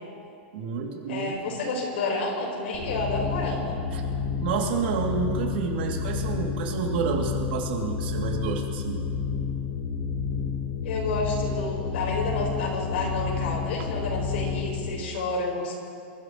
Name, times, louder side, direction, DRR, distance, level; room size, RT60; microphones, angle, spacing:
voice 1, 0.5-1.3 3.9-4.0 4.4-9.0, right 6 dB, 60° right, 0 dB, 2.8 m, -29 dB
voice 2, 1.1-3.8 10.8-15.7, left 2 dB, 70° left, -1 dB, 4.5 m, -30 dB
sound 1, 2.7-14.9, left 6 dB, 50° left, 3.5 m, -30 dB
27.5 x 13.5 x 3.1 m, 2.4 s
supercardioid pair, 170°, 6 cm